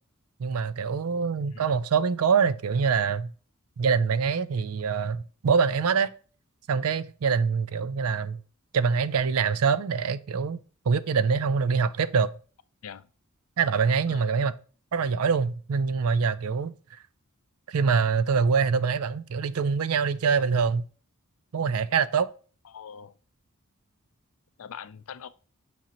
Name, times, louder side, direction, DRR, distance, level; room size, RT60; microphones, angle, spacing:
voice 1, 0.4-3.3 3.8-6.1 6.7-8.4 8.7-10.6 10.9-12.3 13.6-14.5 14.9-16.7 17.7-20.8 21.5-22.3, right 5 dB, 80° right, 0.5 m, -24 dB
voice 2, 14.1-14.4 22.6-23.1 24.6-25.3, left 7 dB, 70° left, 0.5 m, -43 dB
7.4 x 5.4 x 3.0 m
head